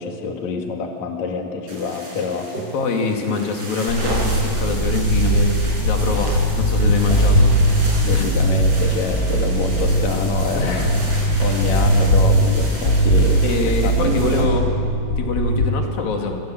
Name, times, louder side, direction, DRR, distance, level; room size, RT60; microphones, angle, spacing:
voice 1, 0.0-2.5 7.1-7.4 8.0-11.0 11.4-14.6, left 5 dB, 55° left, 2 dB, 3.1 m, -27 dB
sound 1, 1.7-14.4, right 2 dB, 45° right, 6.7 m, -33 dB
voice 2, 2.7-7.6 8.1-8.3 10.6-10.9 13.4-14.7 15.2-16.4, left 3 dB, 80° left, 2 dB, 4.0 m, -24 dB
sound 2, 3.9-15.7, right 1 dB, 35° left, 1.8 m, -19 dB
25.5 x 25.5 x 7.8 m, 2.5 s
omnidirectional pair, 4.1 m